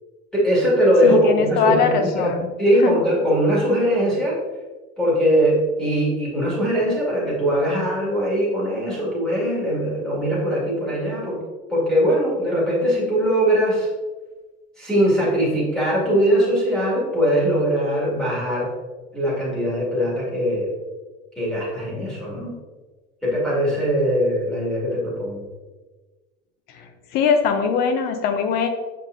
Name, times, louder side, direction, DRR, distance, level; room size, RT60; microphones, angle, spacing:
voice 1, 0.3-2.3 2.6-4.4 5.0-11.4 11.7-13.9 14.8-18.7 19.1-20.7 21.4-22.5 23.2-25.4, equal, 5° left, -7 dB, 2.0 m, -21 dB
voice 2, 1.0-2.5 2.8-3.0 26.8-26.9 27.1-28.7, left 6 dB, 50° left, 8 dB, 0.7 m, -21 dB
7.5 x 5.5 x 2.6 m, 1.3 s
cardioid pair, 175°, 21 cm